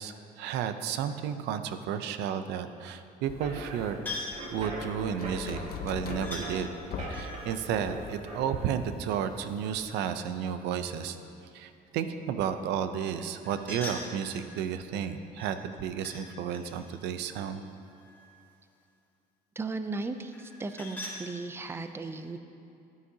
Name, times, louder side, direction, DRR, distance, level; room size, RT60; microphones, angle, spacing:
voice 1, 0.0-4.0 4.5-6.7 7.1-11.2 11.5-17.6, right 8 dB, 85° right, 9 dB, 0.6 m, -32 dB
sound 1, 3.2-8.4, right 1 dB, 45° right, 1.8 m, -41 dB
sound 2, 3.3-9.9, left 6 dB, 65° left, 0.7 m, -43 dB
sound 3, 4.1-4.4 6.2-6.5 7.1-8.9 13.4-14.5 15.4-16.2 16.5-18.4 20.3-21.2, left 2 dB, 10° left, 1.6 m, -42 dB
voice 2, 19.6-22.4, right 3 dB, 15° right, 9 dB, 0.4 m, -36 dB
13.5 x 8.6 x 2.8 m, 2.6 s
cardioid pair, 110°, 17 cm